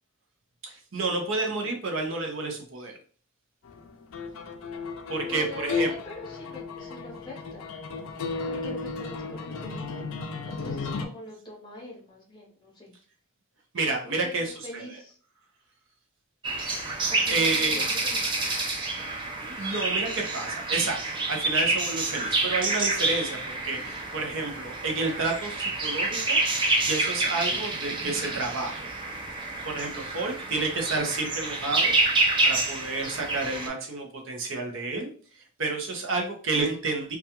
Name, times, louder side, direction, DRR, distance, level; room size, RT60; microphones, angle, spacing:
voice 1, 0.6-3.0 5.1-5.9 13.7-14.8 16.6-16.9 17.3-17.8 19.4-21.0 21.3-26.4 26.9-28.8 29.6-31.9 32.4-35.1 35.6-37.2, right 3 dB, 60° right, 2 dB, 0.6 m, -30 dB
sound 1, 3.6-11.1, left 4 dB, 65° left, 0.4 m, -34 dB
voice 2, 5.2-7.7 8.5-10.1 10.5-12.9 14.0-15.2 17.0-18.5, left 2 dB, 20° left, -3 dB, 0.8 m, -43 dB
sound 2, 16.4-33.7, right 2 dB, 20° right, 0.4 m, -28 dB
2.3 x 2.3 x 2.8 m, 0.43 s
head